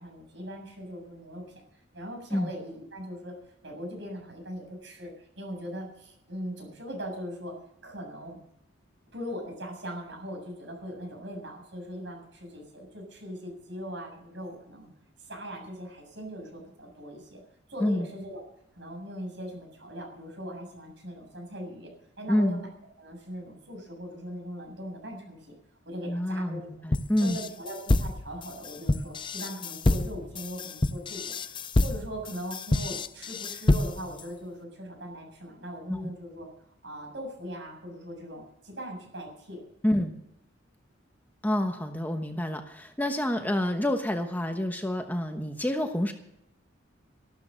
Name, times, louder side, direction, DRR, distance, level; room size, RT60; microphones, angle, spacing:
voice 1, 0.0-1.4 1.7-3.3 3.6-7.5 7.8-8.4 9.1-14.9 15.2-17.4 17.7-18.4 18.8-21.9 22.2-22.7 23.0-25.6 25.9-26.7 27.2-36.5 36.8-39.9, equal, 65° right, 1 dB, 7.4 m, -40 dB
voice 2, 22.3-22.6 26.1-27.4 35.9-36.1 39.8-40.1 41.4-46.1, left 1 dB, 10° left, 5 dB, 1.1 m, -28 dB
sound 1, 26.9-34.2, left 2 dB, 25° left, 0.5 m, -27 dB
14.5 x 13.0 x 6.4 m, 0.79 s
head